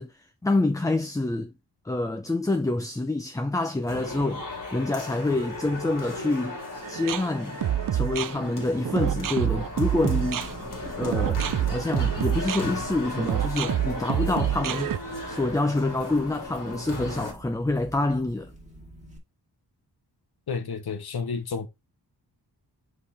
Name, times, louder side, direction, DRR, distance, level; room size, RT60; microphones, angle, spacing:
voice 1, 0.0-1.5 1.8-4.5 4.7-6.6 6.9-7.6 7.9-10.5 10.9-14.9 15.3-18.5, left 2 dB, 10° left, 0.4 m, -27 dB
sound 1, 3.9-17.3, left 2 dB, 50° left, 2.6 m, -37 dB
sound 2, 6.8-15.0, right 11 dB, 55° right, 0.4 m, -27 dB
sound 3, 9.0-19.2, right 2 dB, 15° right, 1.8 m, -46 dB
voice 2, 20.5-21.7, left 5 dB, 65° left, 1.0 m, -31 dB
5.6 x 4.8 x 4.1 m
wide cardioid pair, 160°, 41 cm